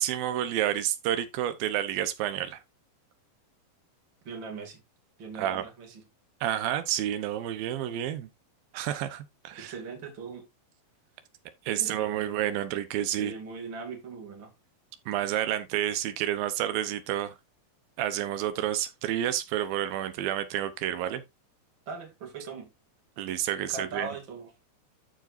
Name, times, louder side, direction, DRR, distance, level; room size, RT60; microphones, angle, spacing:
voice 1, 0.0-2.6 5.4-5.7 6.4-8.3 8.7-9.7 11.7-13.3 15.1-17.3 18.0-21.2 23.2-24.1, right 11 dB, 90° right, 2.7 m, -29 dB
voice 2, 4.2-4.8 5.2-6.0 9.5-10.4 11.7-12.3 13.2-14.5 21.9-22.7 23.6-24.5, right 4 dB, 35° right, 2.7 m, -40 dB
13.5 x 5.0 x 2.6 m
omnidirectional pair, 4.1 m